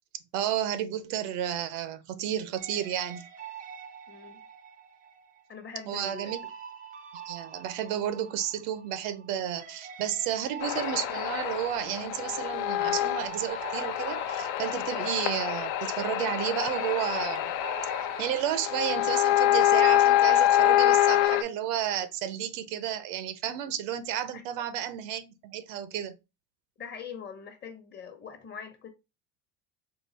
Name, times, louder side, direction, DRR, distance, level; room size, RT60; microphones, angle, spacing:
voice 1, 0.3-3.3 5.9-6.4 7.3-17.6 18.2-26.2, right 10 dB, 75° right, 0.7 m, -32 dB
sound 1, 2.6-9.3 9.6-16.4 16.7-21.3, right 8 dB, 20° right, 0.4 m, -46 dB
voice 2, 4.1-4.4 5.5-6.3 24.3-24.4 26.8-28.9, left 7 dB, 25° left, 0.8 m, -43 dB
sound 2, 10.6-21.4, left 13 dB, 60° left, 0.5 m, -26 dB
3.9 x 2.4 x 3.9 m
supercardioid pair, 125°, 39 cm